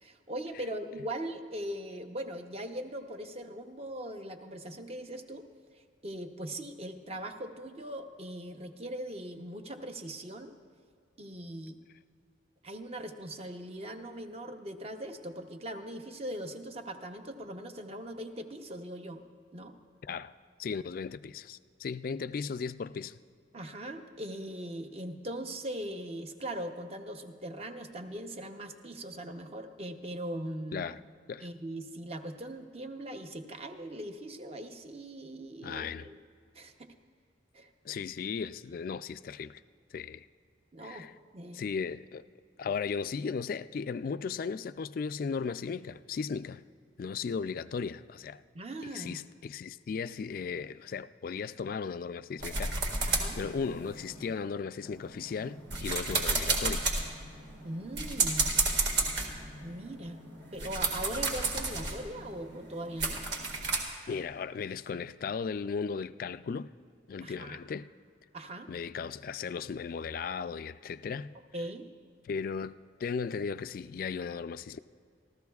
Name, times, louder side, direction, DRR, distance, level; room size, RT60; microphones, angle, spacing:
voice 1, 0.0-5.5 6.0-10.5 11.2-11.8 12.6-19.2 19.5-19.8 23.5-30.9 31.4-36.2 36.5-36.9 37.5-37.7 40.7-41.1 41.3-41.6 48.5-49.2 53.1-53.4 57.6-58.5 59.6-60.2 60.5-63.2 67.2-67.6 68.3-68.7 71.5-71.9, right 1 dB, 35° right, 0.8 m, -40 dB
voice 2, 20.0-20.3 20.6-23.2 30.7-31.0 31.3-31.5 35.6-36.1 37.9-39.6 39.9-40.2 40.8-41.1 41.5-42.3 42.6-46.6 47.0-48.4 48.9-56.9 64.1-66.7 67.1-67.9 68.7-71.3 72.3-72.7 73.0-74.8, left 5 dB, 50° left, 0.3 m, -36 dB
sound 1, 52.4-54.3 54.8-63.8, right 3 dB, 75° right, 1.9 m, -32 dB
27.0 x 13.5 x 2.4 m
head